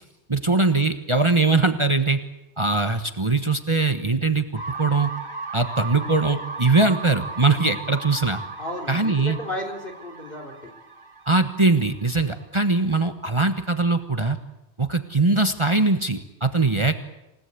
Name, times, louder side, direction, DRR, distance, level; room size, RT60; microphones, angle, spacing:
voice 1, 0.3-2.2 2.6-5.1 5.5-8.4 8.9-9.4 11.3-14.4 14.8-17.0, right 3 dB, 25° right, 6 dB, 1.3 m, -21 dB
sound 1, 4.6-12.4, right 3 dB, 45° right, 2.1 m, -36 dB
voice 2, 8.6-10.7, left 1 dB, 50° left, 1 dB, 4.0 m, -33 dB
28.5 x 17.5 x 8.4 m, 0.95 s
omnidirectional pair, 1.1 m